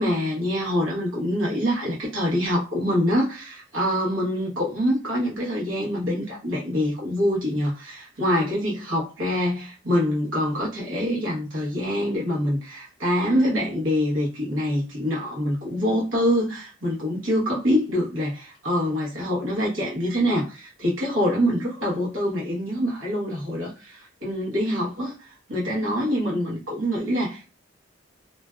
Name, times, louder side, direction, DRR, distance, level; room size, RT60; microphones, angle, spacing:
voice 1, 0.0-27.5, equal, 85° right, 1.0 m, -25 dB
2.5 x 2.2 x 2.2 m
head